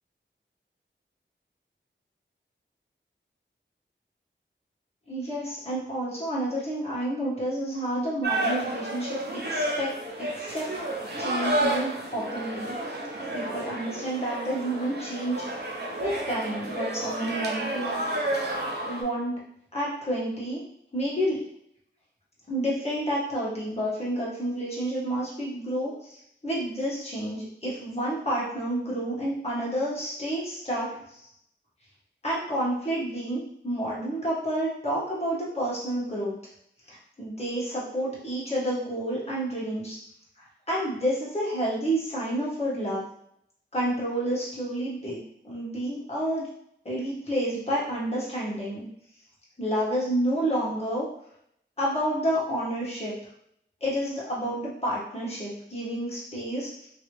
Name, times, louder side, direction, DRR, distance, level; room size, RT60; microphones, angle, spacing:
voice 1, 5.1-9.2 9.5-10.0 10.3-10.7 11.2-12.7 13.3-15.5 16.0-18.0 18.9-19.3 19.7-20.6 20.9-21.4 22.5-26.2 26.4-31.3 32.2-36.3 36.9-40.0 40.4-43.0 43.7-45.2 45.4-46.5 46.8-48.8 49.6-51.0 51.8-53.1 53.8-56.9, right 1 dB, 30° left, -7 dB, 1.4 m, -29 dB
sound 1, 8.2-19.0, right 1 dB, 55° right, 0.7 m, -31 dB
3.0 x 2.8 x 3.1 m, 0.71 s
wide cardioid pair, 75°, 20 cm